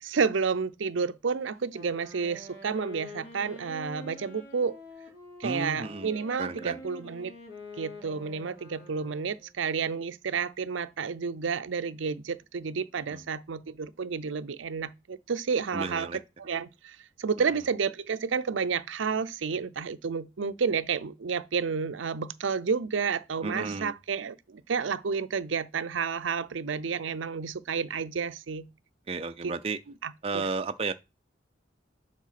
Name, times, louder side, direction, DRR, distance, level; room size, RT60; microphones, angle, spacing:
voice 1, 0.0-4.8 5.4-7.3 7.8-28.7 29.4-29.5 30.0-30.5, right 5 dB, 80° right, 0.5 m, -31 dB
Wind instrument woodwind instrument, 1.7-9.5, left 2 dB, 50° left, 3.2 m, -46 dB
voice 2, 5.4-6.1 6.4-6.8 13.1-13.2 15.7-16.2 23.4-23.9 29.1-29.8 30.2-30.9, right 4 dB, 30° right, 0.4 m, -32 dB
7.4 x 3.6 x 5.8 m
head